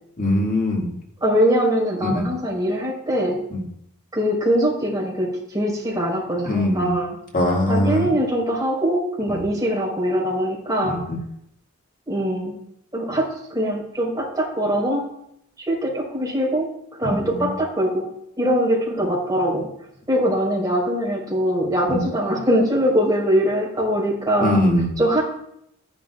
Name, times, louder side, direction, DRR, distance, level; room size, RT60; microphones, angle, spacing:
voice 1, 0.2-0.9 2.0-2.3 3.5-3.6 6.5-6.9 7.3-8.1 9.3-9.4 10.9-11.2 17.0-17.4 21.9-22.0 24.4-24.9, left 1 dB, 40° left, -1 dB, 2.1 m, -22 dB
voice 2, 1.2-3.4 4.1-7.2 7.7-11.0 12.1-12.5 12.9-15.0 15.6-16.7 17.0-18.1 18.4-19.7 20.1-24.6 25.0-25.2, equal, 15° right, -4 dB, 4.5 m, -22 dB
14.0 x 10.5 x 2.4 m, 0.76 s
head